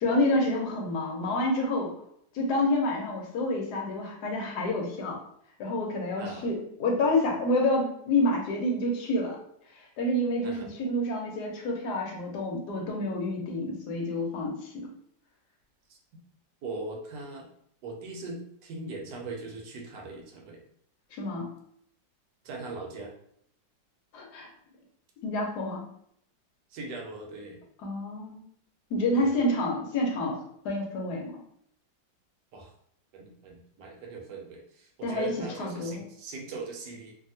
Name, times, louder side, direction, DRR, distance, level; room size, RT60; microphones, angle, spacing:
voice 1, 0.0-1.9 2.3-5.2 5.6-9.4 9.8-14.9 21.1-21.5 24.1-24.5 25.2-25.8 27.8-28.4 28.9-30.4 30.6-31.4 35.0-35.3 35.6-36.0, left 1 dB, 70° left, 0 dB, 1.2 m, -28 dB
voice 2, 6.2-6.5 10.4-10.7 15.9-16.0 16.6-17.5 17.8-20.6 22.4-23.1 26.7-27.6 29.1-29.3 32.5-32.7 33.1-37.2, right 3 dB, 75° right, 1 dB, 1.2 m, -40 dB
2.8 x 2.6 x 2.7 m, 0.68 s
omnidirectional pair, 2.0 m